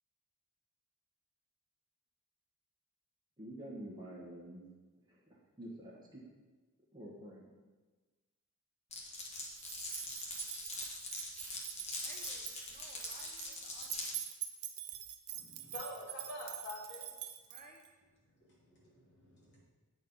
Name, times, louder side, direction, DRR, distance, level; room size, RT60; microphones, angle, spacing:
voice 1, 3.4-4.6 5.1-6.2 6.9-7.4, right 1 dB, 20° right, -5 dB, 1.4 m, -48 dB
Glass, 8.9-14.2, left 2 dB, 30° left, 1.2 m, -43 dB
sound 1, 9.6-17.9, right 12 dB, 75° right, 0.7 m, -45 dB
voice 2, 12.0-14.2 17.5-17.8, right 2 dB, 35° right, 1 dB, 0.7 m, -58 dB
voice 3, 15.3-17.1 18.4-19.6, left 1 dB, 50° left, -7 dB, 2.7 m, -47 dB
8.3 x 4.3 x 5.5 m, 1.3 s
head